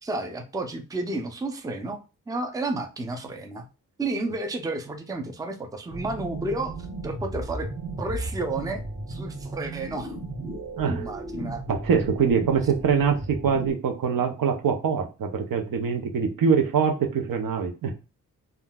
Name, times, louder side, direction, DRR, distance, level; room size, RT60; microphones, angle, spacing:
voice 1, 0.0-2.0 2.3-3.7 4.0-6.7 7.0-7.7 8.0-8.8 9.1-10.2 10.9-11.6, right 2 dB, 10° right, 5 dB, 0.4 m, -31 dB
sound 1, 5.9-13.7, right 2 dB, 55° right, 1.7 m, -35 dB
voice 2, 10.8-11.1 11.7-17.9, right 6 dB, 75° right, 3 dB, 0.7 m, -24 dB
3.7 x 2.3 x 2.2 m, 0.31 s
wide cardioid pair, 105°, 34 cm